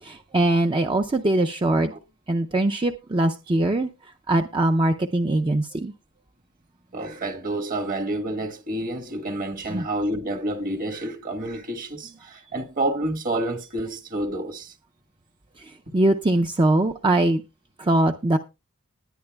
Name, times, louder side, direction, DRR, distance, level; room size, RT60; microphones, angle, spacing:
voice 1, 0.0-1.9 2.3-3.9 4.3-5.9 9.6-9.8 15.6-17.4 17.8-18.4, right 1 dB, 25° right, 0.5 m, -22 dB
voice 2, 6.9-14.7, right 1 dB, 40° right, 1.4 m, -29 dB
19.5 x 9.5 x 2.3 m
head